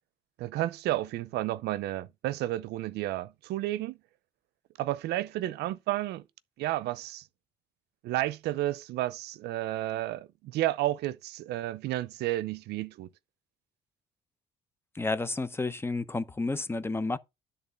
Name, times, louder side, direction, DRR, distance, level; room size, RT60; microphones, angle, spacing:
voice 1, 0.4-4.0 4.8-6.2 6.6-7.2 8.0-13.1, right 15 dB, 75° right, 0.6 m, -31 dB
voice 2, 14.9-17.2, left 3 dB, 15° left, 0.7 m, -31 dB
10.5 x 3.7 x 6.8 m
cardioid pair, 110°, 17 cm